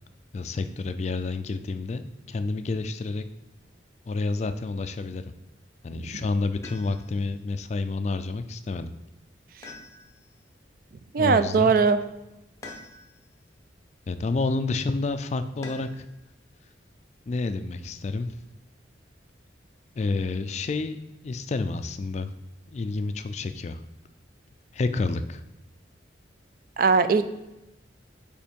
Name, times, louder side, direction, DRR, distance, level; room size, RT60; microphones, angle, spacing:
voice 1, 0.3-3.2 4.1-5.2 5.8-8.9 11.2-11.7 14.1-16.1 17.3-18.3 20.0-22.3 22.7-23.8 24.7-25.4, left 3 dB, 35° left, 10 dB, 0.3 m, -29 dB
voice 2, 5.9-6.2 11.1-12.0 26.8-27.2, right 5 dB, 50° right, 11 dB, 0.3 m, -20 dB
sound 1, 6.6-7.3 9.6-10.4 12.6-13.3 15.6-16.1 17.8-18.5, left 2 dB, 15° left, 0.8 m, -45 dB
5.3 x 4.4 x 5.2 m, 0.96 s
head